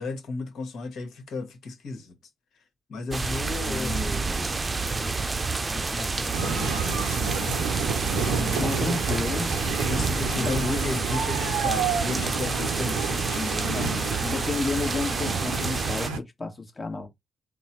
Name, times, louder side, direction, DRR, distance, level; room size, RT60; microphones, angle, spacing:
voice 1, 0.0-2.1 2.9-4.3 4.9-5.3 5.7-7.6 8.2-9.0 9.8-14.2, left 3 dB, 65° left, 1.3 m, -35 dB
sound 1, 3.1-16.1, right 3 dB, 30° right, 0.6 m, -29 dB
voice 2, 3.6-4.2 8.6-9.5 10.3-11.0 13.7-17.1, left 3 dB, 30° left, 1.3 m, -32 dB
sound 2, 6.3-16.2, right 6 dB, 80° right, 0.7 m, -30 dB
3.7 x 2.1 x 4.4 m
hypercardioid pair, 40°, 0 cm